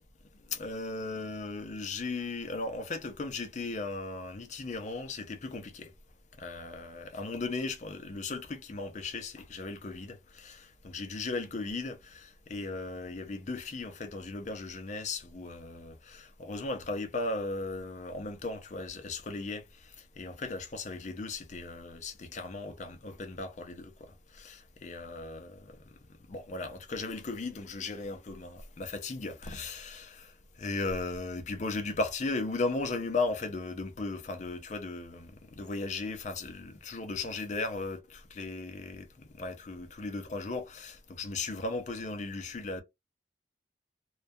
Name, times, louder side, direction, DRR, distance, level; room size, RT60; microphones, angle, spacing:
voice 1, 0.5-5.9 6.4-19.6 20.2-23.9 24.3-25.8 26.3-30.3 30.6-35.3 35.6-39.1 39.4-42.8, left 3 dB, 45° left, 0.5 m, -36 dB
2.2 x 2.2 x 2.6 m
head